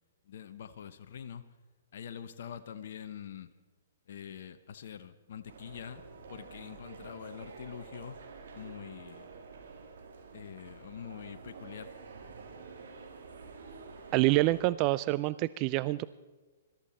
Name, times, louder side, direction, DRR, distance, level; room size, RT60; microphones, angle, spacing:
voice 1, 0.3-1.5 1.9-3.5 4.1-6.0 6.3-8.2 8.5-9.3 10.3-11.9, left 8 dB, 60° left, 10 dB, 0.8 m, -45 dB
sound 1, 5.5-14.6, right 4 dB, 70° right, 2.6 m, -49 dB
voice 2, 14.1-16.0, right 19 dB, 35° right, 17 dB, 0.4 m, -27 dB
21.5 x 13.0 x 4.2 m, 1.3 s
hypercardioid pair, 125°, 0 cm